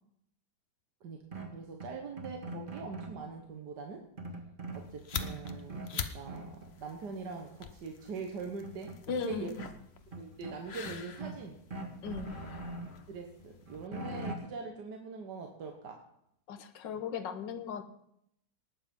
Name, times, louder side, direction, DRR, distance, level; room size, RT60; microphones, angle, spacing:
voice 1, 1.0-4.0 4.7-8.9 9.2-9.5 10.1-11.6 13.1-16.0, right 4 dB, 70° right, 2 dB, 1.8 m, -42 dB
sound 1, 1.3-3.2 4.2-5.9 6.3-6.7 8.0-8.1 8.4-9.7 10.1-11.4 11.7-13.0 13.4-14.4, right 2 dB, 30° right, 1.9 m, -42 dB
sound 2, 4.7-13.9, left 7 dB, 50° left, 0.8 m, -45 dB
voice 2, 9.1-9.6 12.0-12.4 16.5-17.8, left 7 dB, 85° left, 9 dB, 1.7 m, -37 dB
19.0 x 7.3 x 5.3 m, 0.74 s
omnidirectional pair, 1.9 m